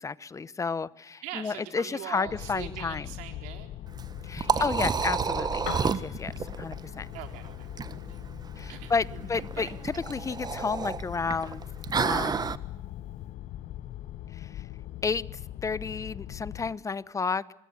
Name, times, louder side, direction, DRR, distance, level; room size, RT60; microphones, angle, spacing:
voice 1, 0.0-3.1 4.2-7.1 8.6-11.6 12.0-12.6 14.3-14.7 15.0-17.5, left 5 dB, 25° left, 19 dB, 1.0 m, -32 dB
voice 2, 1.2-3.7 4.4-4.7 7.1-7.7 8.1-8.2 8.7-9.3 9.6-10.0, right 12 dB, 75° right, 5 dB, 4.2 m, -42 dB
sound 1, 2.3-16.8, left 13 dB, 60° left, 1.1 m, -41 dB
Liquid, 3.9-12.6, right 6 dB, 30° right, 1.3 m, -31 dB
Piano, 5.5-13.3, left 10 dB, 80° left, 3.9 m, -49 dB
25.0 x 21.0 x 8.2 m, 0.83 s
supercardioid pair, 75°, 13 cm